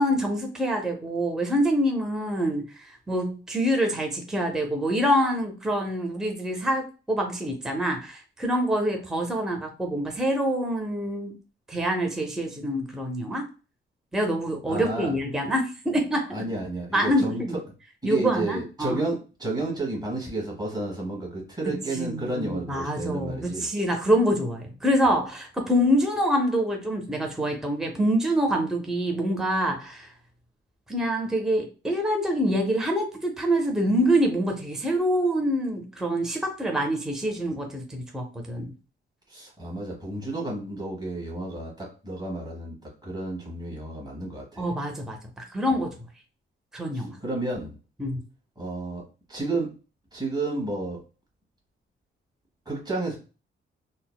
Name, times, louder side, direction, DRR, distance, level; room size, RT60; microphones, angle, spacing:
voice 1, 0.0-11.3 11.7-13.5 14.1-16.4 16.9-17.5 18.0-19.0 21.9-30.1 30.9-38.7 44.6-45.9 46.7-47.2 48.0-48.2, equal, ahead, 2 dB, 0.5 m, -26 dB
voice 2, 14.7-15.1 16.3-17.6 18.0-23.7 39.3-44.7 46.9-47.8 48.6-49.0 49.3-49.7 50.1-51.0 52.6-53.2, right 2 dB, 20° right, -3 dB, 1.4 m, -31 dB
3.9 x 2.0 x 2.2 m, 0.33 s
cardioid pair, 125°, 21 cm